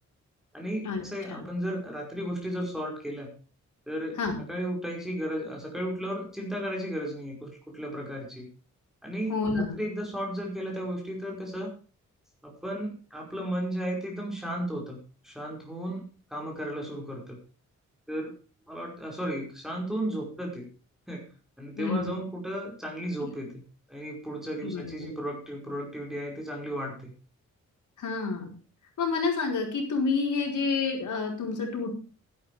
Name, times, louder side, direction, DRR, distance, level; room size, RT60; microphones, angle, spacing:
voice 1, 0.5-3.3 3.9-4.2 4.5-8.5 9.0-11.7 12.4-16.0 16.3-17.4 18.1-18.3 18.7-20.7 21.1-21.2 21.6-23.6 23.9-27.1, equal, ahead, -1 dB, 5.1 m, -34 dB
voice 2, 9.3-9.8 21.8-22.2 24.6-25.1 28.0-28.5 29.0-31.9, left 4 dB, 85° left, 1 dB, 4.8 m, -29 dB
12.5 x 11.5 x 4.9 m, 0.36 s
wide cardioid pair, 160°, 30 cm